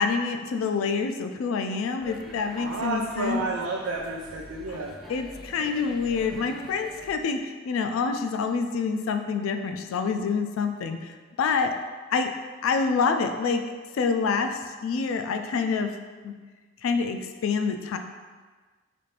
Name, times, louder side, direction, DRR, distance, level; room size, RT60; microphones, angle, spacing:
voice 1, 0.0-3.5 4.7-4.8 5.1-11.7 12.1-12.3 12.6-13.6 13.9-15.9 16.2-16.3 16.8-18.0, left 5 dB, 90° left, 6 dB, 0.3 m, -27 dB
sound 1, 2.0-7.1, equal, ahead, 0.5 m, -46 dB
voice 2, 2.6-5.0, right 3 dB, 80° right, -1 dB, 0.4 m, -30 dB
4.2 x 2.5 x 3.2 m, 1.4 s
head